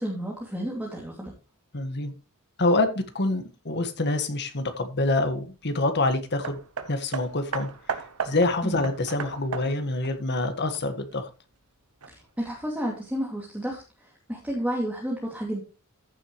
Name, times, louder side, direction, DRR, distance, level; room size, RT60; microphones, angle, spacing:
voice 1, 0.0-1.3 8.6-8.8 12.1-13.8 14.3-15.6, equal, 5° right, -3 dB, 2.5 m, -31 dB
voice 2, 1.7-2.1 2.6-6.6 6.9-11.3, left 2 dB, 50° left, 8 dB, 1.7 m, -26 dB
Hammer, 6.4-11.2 12.0-12.1, right 5 dB, 80° right, 1.1 m, -35 dB
14.5 x 7.5 x 3.1 m, 0.31 s
head